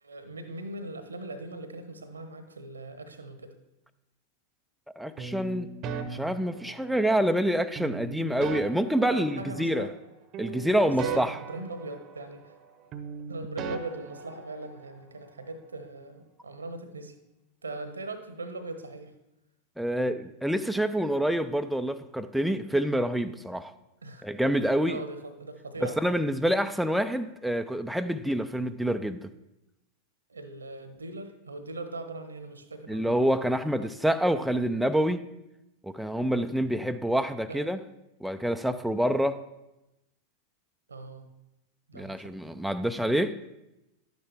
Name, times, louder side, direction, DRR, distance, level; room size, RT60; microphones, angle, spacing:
voice 1, 0.0-3.5 9.1-9.9 10.8-12.5 13.3-17.1 17.6-19.1 24.0-24.3 24.9-26.2 30.3-33.3 33.8-34.1 37.5-37.7 40.9-41.3 41.9-42.2, right 2 dB, 75° right, 9 dB, 1.0 m, -40 dB
voice 2, 5.0-5.7 6.0-9.9 10.4-11.3 19.8-23.7 24.2-25.0 25.8-29.3 32.9-35.2 35.8-37.8 38.2-39.4 41.9-43.4, equal, ahead, 8 dB, 0.4 m, -27 dB
sound 1, 5.2-7.2 7.8-10.1 10.3-12.7 12.9-15.0, right 5 dB, 35° right, 0.8 m, -39 dB
11.0 x 9.3 x 3.5 m, 0.94 s
figure-of-eight pair, 90°, 0 cm